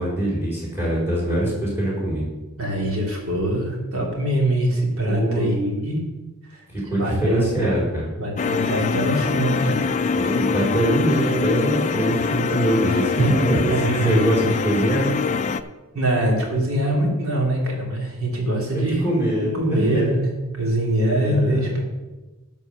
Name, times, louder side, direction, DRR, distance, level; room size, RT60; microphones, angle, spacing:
voice 1, 0.0-2.3 5.0-5.5 6.7-8.1 10.2-13.7 14.0-15.1 18.7-20.1 21.1-21.7, right 1 dB, 10° right, -4 dB, 4.3 m, -23 dB
voice 2, 2.6-6.0 6.5-6.6 7.0-7.8 8.2-9.8 12.9-14.2 15.9-19.0 19.4-21.8, right 1 dB, 70° right, -1 dB, 3.0 m, -23 dB
sound 1, 8.4-15.6, left 5 dB, 35° left, 0.4 m, -24 dB
11.0 x 5.4 x 7.0 m, 1.1 s
head